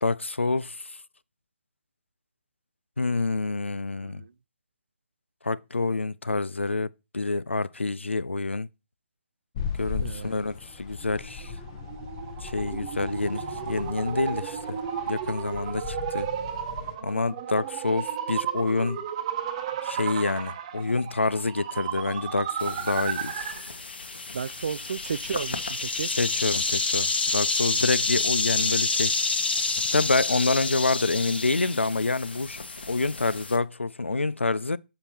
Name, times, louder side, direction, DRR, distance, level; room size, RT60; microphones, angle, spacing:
voice 1, 0.0-0.9 3.0-4.2 5.4-6.9 7.1-8.7 9.8-11.5 12.4-14.8 15.1-16.3 17.0-19.0 19.8-23.5 26.1-29.2 29.6-34.8, left 3 dB, 80° left, 0.4 m, -27 dB
sound 1, 9.5-17.0, left 6 dB, 30° left, 1.0 m, -38 dB
voice 2, 10.0-10.4 24.3-26.1, right 6 dB, 50° right, 0.3 m, -33 dB
sound 2, 11.0-23.7, right 8 dB, 30° right, 0.9 m, -34 dB
sound 3, 22.6-33.6, left 3 dB, 55° left, 1.1 m, -29 dB
6.7 x 5.7 x 4.3 m
figure-of-eight pair, 140°, 6 cm